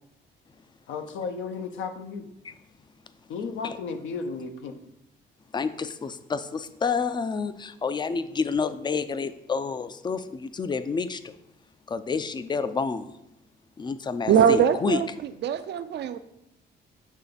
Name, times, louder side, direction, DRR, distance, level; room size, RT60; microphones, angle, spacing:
voice 1, 0.9-2.3 3.3-4.8, left 5 dB, 80° left, 6 dB, 0.8 m, -34 dB
voice 2, 5.5-11.3 11.9-13.1 13.8-15.0, left 5 dB, 20° left, 12 dB, 0.4 m, -29 dB
voice 3, 14.3-16.2, right 8 dB, 60° right, 12 dB, 0.4 m, -22 dB
7.3 x 3.3 x 4.0 m, 0.83 s
cardioid pair, 90°, 20 cm